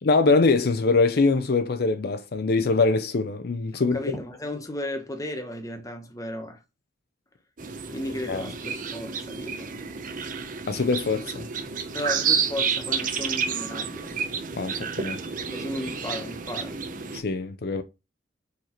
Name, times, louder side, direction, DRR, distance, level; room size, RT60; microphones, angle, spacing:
voice 1, 0.0-4.0 8.3-8.4 10.7-11.5 14.6-15.2 17.1-17.8, left 3 dB, 60° left, 0.5 m, -23 dB
voice 2, 3.9-6.6 7.9-9.7 11.9-14.1 15.5-16.8, left 1 dB, 20° left, 1.2 m, -34 dB
sound 1, 7.6-17.2, right 6 dB, 50° right, 0.8 m, -30 dB
4.8 x 4.6 x 4.4 m
head